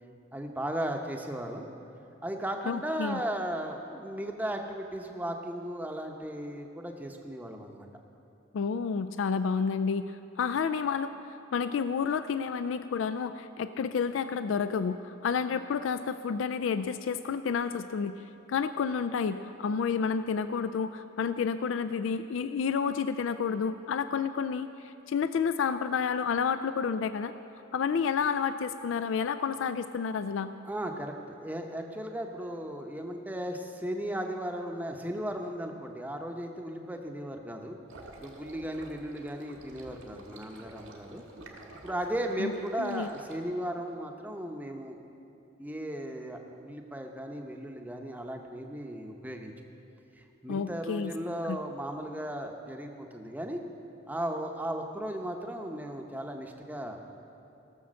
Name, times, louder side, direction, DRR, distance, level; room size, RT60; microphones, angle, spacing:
voice 1, 0.3-1.7 2.2-7.9 30.6-37.8 38.2-41.2 41.8-45.0 45.6-49.5 50.1-53.6 54.1-57.0, right 1 dB, 10° right, 3 dB, 0.7 m, -36 dB
voice 2, 2.7-3.2 8.5-11.1 11.5-18.1 18.5-27.3 27.7-30.6 42.4-42.5 42.8-43.1 50.5-51.1 51.5-51.6, left 6 dB, 70° left, 12 dB, 0.3 m, -30 dB
sound 1, 37.9-43.4, right 1 dB, 85° right, 1.8 m, -49 dB
17.5 x 7.0 x 6.3 m, 2.8 s
head